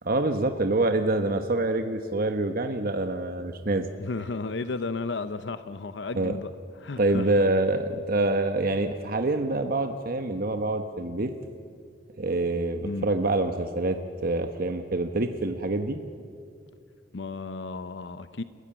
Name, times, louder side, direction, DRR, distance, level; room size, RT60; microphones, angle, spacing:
voice 1, 0.0-3.9 6.1-6.4 7.0-11.3 12.2-14.0 14.2-16.0, right 2 dB, 55° right, 1.1 m, -26 dB
voice 2, 4.0-6.5 6.8-7.3 12.8-13.1 17.1-18.4, left 3 dB, 70° left, 0.7 m, -33 dB
30.0 x 14.5 x 8.9 m
head